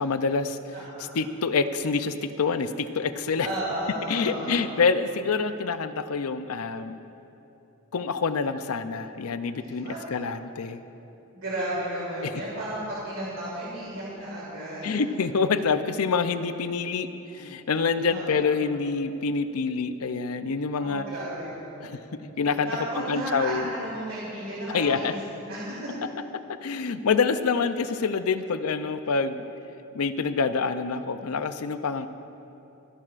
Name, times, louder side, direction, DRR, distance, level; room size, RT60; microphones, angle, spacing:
voice 1, 0.0-0.6 1.1-3.5 4.1-7.0 7.9-10.8 12.2-12.3 14.8-21.0 21.8-22.0 22.4-22.7 23.1-23.7 24.7-25.1 26.5-29.4 29.9-32.1, left 5 dB, 85° left, 11 dB, 0.5 m, -26 dB
voice 2, 0.7-1.2 3.4-4.8 9.8-10.1 11.3-15.0 18.0-18.8 20.7-22.1 22.6-25.2 25.5-25.9, right 1 dB, 65° right, -8 dB, 3.1 m, -34 dB
26.5 x 11.0 x 2.5 m, 2.9 s
head